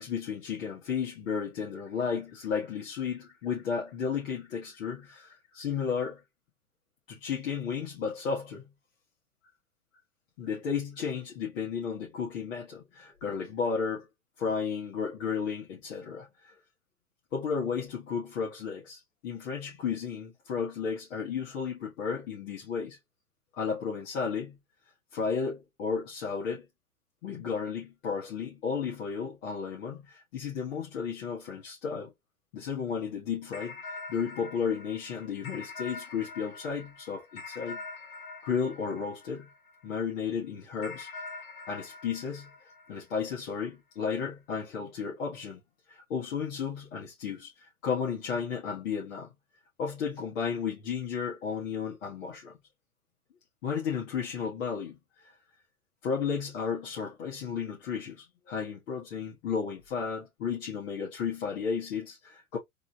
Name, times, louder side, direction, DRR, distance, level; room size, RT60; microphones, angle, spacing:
voice 1, 0.0-6.2 7.1-8.7 10.4-14.1 14.4-16.5 17.3-23.0 23.6-24.6 25.1-26.7 27.2-32.1 32.5-37.8 38.4-39.5 39.8-41.3 41.7-42.5 42.9-45.6 45.9-49.3 49.8-52.5 53.6-55.3 56.0-62.6, left 6 dB, 60° left, 1.5 m, -33 dB
sound 1, 33.5-40.1 40.8-43.6, left 3 dB, 75° left, 1.8 m, -44 dB
3.7 x 2.8 x 2.3 m
hypercardioid pair, 120°, 43 cm